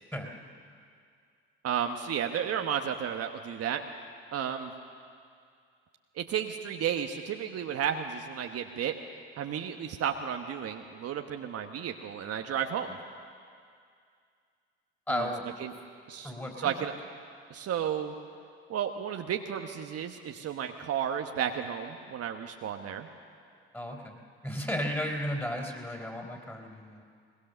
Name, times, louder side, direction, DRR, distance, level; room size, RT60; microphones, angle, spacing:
voice 1, 1.6-3.8 4.3-4.7 6.1-8.9 9.4-13.0 15.1-15.3 15.6-15.7 16.1-16.9 17.5-18.1 18.7-23.1, right 8 dB, 50° right, 4 dB, 1.3 m, -33 dB
voice 2, 15.1-15.5 16.2-16.7 23.7-24.1 24.4-27.0, equal, 5° left, 2 dB, 3.9 m, -34 dB
22.0 x 20.0 x 6.8 m, 2.2 s
hypercardioid pair, 60°, 30 cm